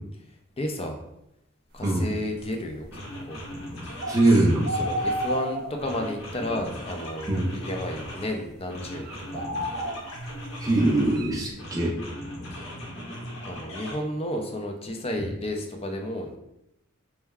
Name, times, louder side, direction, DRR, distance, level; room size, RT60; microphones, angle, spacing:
voice 1, 0.6-1.0 1.7-3.4 4.2-9.0 9.3-9.5 13.4-16.4, left 1 dB, 30° left, 3 dB, 0.5 m, -32 dB
sound 1, 2.4-2.5 2.9-5.5 5.8-8.4 8.7-11.2 11.6-13.9, equal, 75° left, 1.1 m, -38 dB
voice 2, 4.0-4.7 7.3-7.5 10.6-11.9, right 2 dB, 15° right, -2 dB, 0.8 m, -22 dB
sound 2, 4.0-4.3 4.7-6.0 6.5-6.6 7.3-7.9 9.0-10.4 11.1-11.3, equal, 50° right, 0.5 m, -31 dB
4.5 x 2.1 x 3.4 m, 0.85 s
head